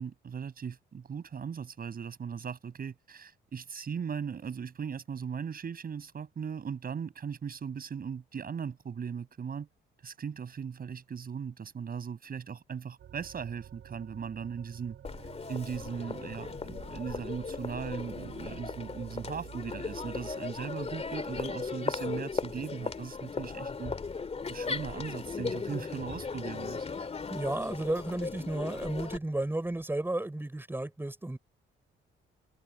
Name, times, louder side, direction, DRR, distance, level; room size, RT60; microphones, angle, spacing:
voice 1, 0.0-9.7 10.0-15.0 15.5-23.9 24.5-26.9, right 7 dB, 50° right, 6.3 m, -38 dB
sound 1, 13.0-20.4, right 10 dB, 70° right, 4.9 m, -49 dB
Crowd, 15.0-29.2, left 4 dB, 30° left, 2.4 m, -37 dB
voice 2, 27.3-31.4, right 1 dB, 10° right, 6.0 m, -33 dB
cardioid pair, 90°, 20 cm